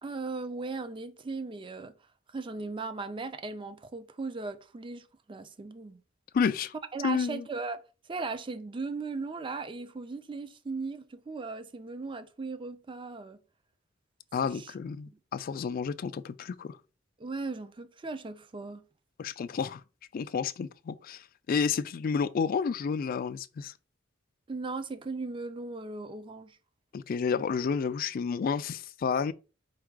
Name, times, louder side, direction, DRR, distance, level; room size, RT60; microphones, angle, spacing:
voice 1, 0.0-1.9 2.3-6.0 6.9-7.8 8.1-13.4 14.5-14.7 15.1-15.2 17.2-18.9 24.5-26.6, right 3 dB, 25° right, 0.4 m, -37 dB
voice 2, 6.3-6.7 7.0-7.4 14.3-16.8 19.2-19.8 20.1-23.7 26.9-29.3, left 6 dB, 45° left, 0.3 m, -30 dB
4.7 x 2.3 x 4.6 m
head